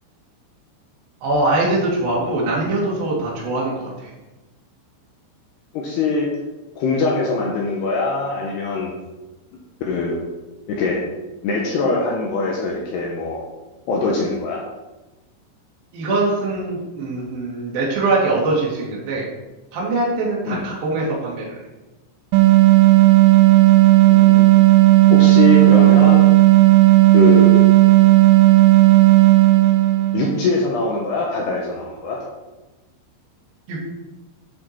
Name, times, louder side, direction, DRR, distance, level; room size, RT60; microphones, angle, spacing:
voice 1, 1.2-4.1 15.9-19.3 19.7-21.6 33.7-33.8, right 2 dB, 50° right, -5 dB, 3.9 m, -22 dB
voice 2, 5.7-6.3 6.8-9.0 9.9-10.2 10.7-11.0 11.4-13.5 13.9-14.6 20.5-20.7 24.1-24.5 25.1-26.3 27.1-27.6 30.1-32.2, left 3 dB, 75° left, -2 dB, 2.6 m, -22 dB
sound 1, 22.3-30.5, right 18 dB, 90° right, 2.6 m, -12 dB
10.5 x 6.5 x 4.5 m, 1.1 s
omnidirectional pair, 5.9 m